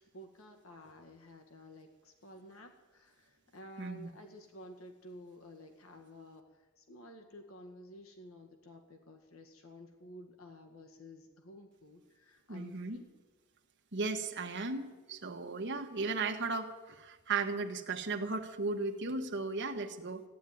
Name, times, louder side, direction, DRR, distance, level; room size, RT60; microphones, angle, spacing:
voice 1, 0.0-13.1, left 1 dB, 90° left, 3 dB, 2.0 m, -53 dB
voice 2, 3.8-4.1 12.5-13.0 13.9-20.2, right 3 dB, 60° right, 4 dB, 1.5 m, -36 dB
15.0 x 10.0 x 9.3 m, 1.2 s
head